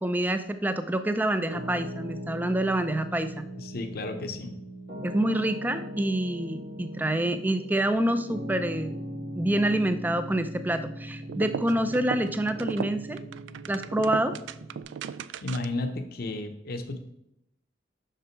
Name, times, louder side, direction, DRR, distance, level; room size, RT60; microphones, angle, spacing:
voice 1, 0.0-3.4 5.0-9.1 9.3-13.2 13.7-14.3, right 1 dB, 10° right, 10 dB, 0.4 m, -27 dB
Piano, 1.5-14.8, equal, 65° right, 2.4 m, -40 dB
voice 2, 3.6-4.6 15.4-17.0, left 2 dB, 55° left, 6 dB, 0.7 m, -33 dB
sound 1, 11.2-15.9, right 7 dB, 80° right, 0.3 m, -36 dB
6.7 x 6.1 x 4.5 m, 0.78 s
head